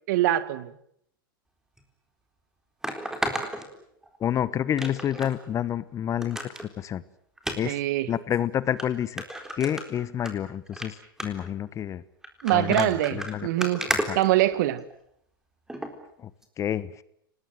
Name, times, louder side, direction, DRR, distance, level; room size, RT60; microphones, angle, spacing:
voice 1, 0.1-0.7 7.6-8.1 12.4-13.8 14.1-14.8, right 15 dB, 55° right, 16 dB, 1.8 m, -24 dB
sound 1, 1.8-1.9 2.8-4.3 4.8-5.3 5.7-5.8 6.2-6.7 7.4-7.6 8.3-8.4 8.8-8.9 9.2-10.3 10.7-10.9 11.2-11.5 12.2-14.9 15.7-15.9 16.4-16.5, right 1 dB, 5° right, 3.9 m, -32 dB
voice 2, 4.2-7.0 7.6-7.8 8.1-9.2 9.6-12.0 12.5-13.5 13.9-14.2 16.2-16.3 16.6-17.0, left 10 dB, 25° left, 18 dB, 1.1 m, -29 dB
29.5 x 19.5 x 7.6 m, 0.71 s
hypercardioid pair, 105°, 12 cm